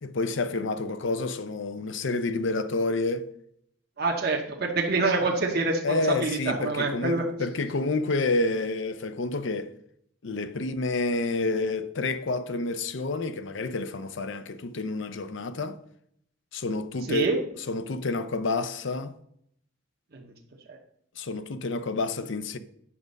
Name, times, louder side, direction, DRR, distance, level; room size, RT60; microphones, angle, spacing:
voice 1, 0.0-3.3 5.8-9.7 10.2-15.8 16.5-17.4 17.7-19.2 21.2-22.6, left 3 dB, 65° left, 0.6 m, -29 dB
voice 2, 4.0-7.2 17.1-17.4 20.1-20.3 20.7-20.8, right 3 dB, 50° right, 1.0 m, -26 dB
8.6 x 6.2 x 5.3 m
head